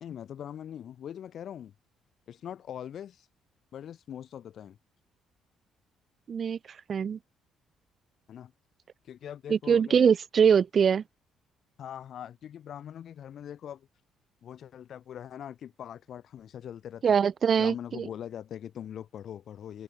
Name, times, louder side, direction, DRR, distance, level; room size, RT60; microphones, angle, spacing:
voice 1, 0.0-1.7 2.3-3.3 3.7-4.8 8.3-8.5 9.0-10.0 11.8-13.9 14.4-17.0 17.6-19.8, left 9 dB, 60° left, 1.8 m, -42 dB
voice 2, 6.3-6.6 6.9-7.2 9.5-11.0 17.0-18.1, right 7 dB, 45° right, 0.3 m, -23 dB
open air
cardioid pair, 95°, 0 cm